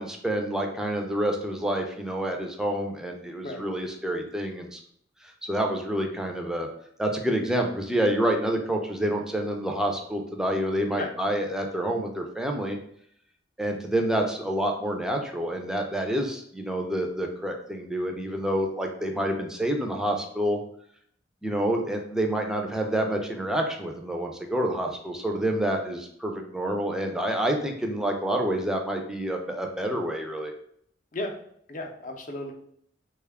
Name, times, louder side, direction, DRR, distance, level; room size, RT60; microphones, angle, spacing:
voice 1, 0.0-4.8 5.2-6.7 7.0-12.8 13.6-20.6 21.4-30.5, right 1 dB, 5° right, 2 dB, 0.4 m, -28 dB
voice 2, 31.7-32.5, left 2 dB, 45° left, 3 dB, 0.5 m, -34 dB
3.5 x 2.3 x 3.4 m, 0.68 s
head